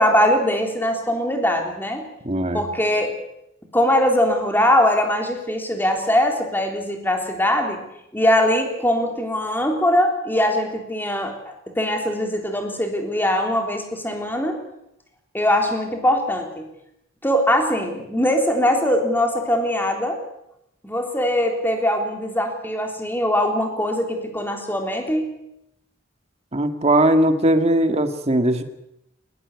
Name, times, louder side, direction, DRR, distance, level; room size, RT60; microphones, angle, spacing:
voice 1, 0.0-2.1 2.5-3.1 3.7-7.8 8.1-11.3 11.7-14.6 15.3-16.7 17.2-20.2 20.8-25.3, left 1 dB, 10° left, 3 dB, 3.7 m, -21 dB
voice 2, 2.2-2.6 26.5-28.6, right 1 dB, 30° right, 7 dB, 1.9 m, -19 dB
20.5 x 19.5 x 8.4 m, 0.81 s
head